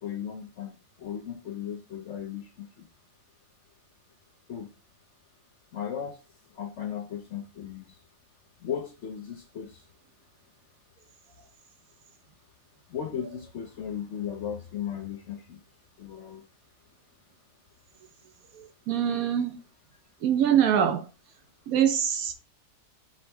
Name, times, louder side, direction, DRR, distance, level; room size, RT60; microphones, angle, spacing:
voice 1, 0.0-2.9 4.5-4.7 5.7-8.1 8.6-9.9 12.8-15.6 16.0-16.5, left 8 dB, 60° left, 0.8 m, -36 dB
voice 2, 18.5-19.6 20.2-21.0 21.7-22.3, right 9 dB, 70° right, 1.0 m, -24 dB
5.3 x 2.9 x 3.2 m
omnidirectional pair, 1.7 m